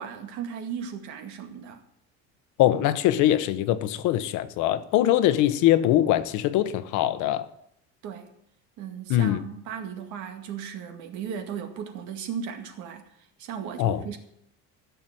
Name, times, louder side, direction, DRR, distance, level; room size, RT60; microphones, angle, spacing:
voice 1, 0.0-1.8 8.0-8.3 8.8-13.0 13.4-14.2, right 7 dB, 60° right, 2.2 m, -36 dB
voice 2, 2.6-7.5 9.1-9.4 13.8-14.0, left 13 dB, 65° left, 1.1 m, -22 dB
15.5 x 7.1 x 7.7 m
cardioid pair, 165°, 32 cm